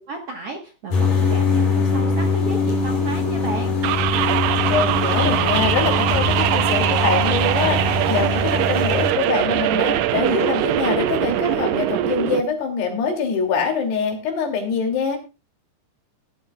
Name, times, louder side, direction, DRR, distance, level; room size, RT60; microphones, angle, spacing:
voice 1, 0.1-3.7, right 3 dB, 55° right, 2 dB, 1.7 m, -32 dB
sound 1, 0.9-9.1, left 4 dB, 50° left, 5.2 m, -22 dB
sound 2, 3.8-12.4, right 12 dB, 80° right, 2.1 m, -22 dB
voice 2, 4.7-15.2, left 5 dB, 85° left, 3 dB, 4.9 m, -24 dB
18.0 x 11.5 x 2.4 m, 0.29 s
omnidirectional pair, 4.6 m